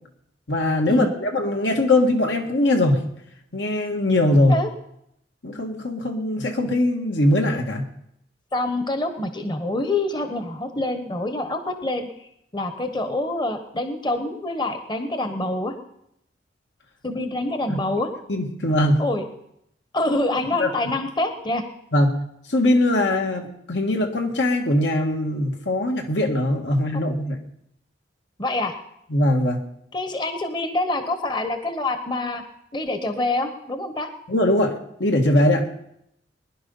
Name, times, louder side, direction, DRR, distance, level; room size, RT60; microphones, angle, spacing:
voice 1, 0.5-3.0 3.5-4.6 5.4-7.9 17.7-17.8 18.3-19.0 20.6-21.0 21.9-22.2 22.5-27.4 29.1-29.6 34.3-35.7, left 1 dB, 75° left, 3 dB, 1.8 m, -21 dB
voice 2, 8.5-12.1 12.5-15.7 17.0-18.1 19.0-19.2 19.9-21.6 26.9-27.0 28.4-28.7 29.9-32.4 32.7-34.1, left 2 dB, 25° left, 8 dB, 1.0 m, -26 dB
20.5 x 11.0 x 5.5 m, 0.77 s
head